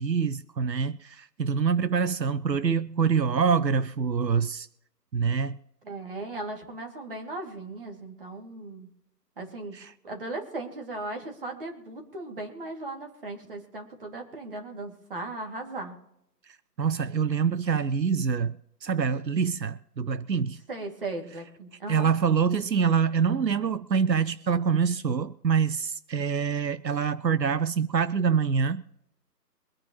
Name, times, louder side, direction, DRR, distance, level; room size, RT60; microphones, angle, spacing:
voice 1, 0.0-4.7 5.1-5.6 9.7-9.9 16.8-20.6 21.9-28.8, right 6 dB, 85° right, 0.8 m, -25 dB
voice 2, 5.8-8.9 9.4-9.8 10.0-15.9 20.7-22.1, right 2 dB, 35° right, 2.5 m, -37 dB
24.0 x 9.4 x 3.1 m
figure-of-eight pair, 155°, 49 cm